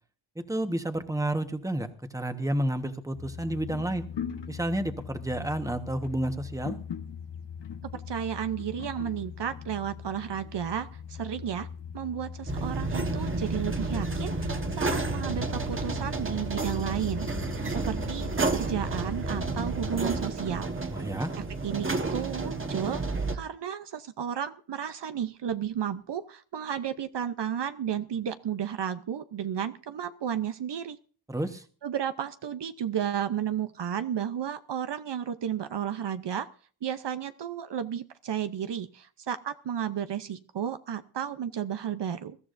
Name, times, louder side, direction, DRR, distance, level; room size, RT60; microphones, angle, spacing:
voice 1, 0.4-4.0 4.5-6.8 20.9-21.3 31.3-31.6, right 1 dB, 5° right, 7 dB, 1.3 m, -30 dB
sound 1, 3.1-20.2, left 7 dB, 65° left, 1.1 m, -40 dB
voice 2, 7.9-11.7 11.9-17.3 17.7-20.7 21.6-31.0 31.8-36.5 36.8-42.4, right 9 dB, 65° right, 11 dB, 0.8 m, -33 dB
sound 2, 12.5-23.4, right 3 dB, 25° right, 1.5 m, -31 dB
21.0 x 13.5 x 2.6 m, 0.41 s
wide cardioid pair, 100°, 46 cm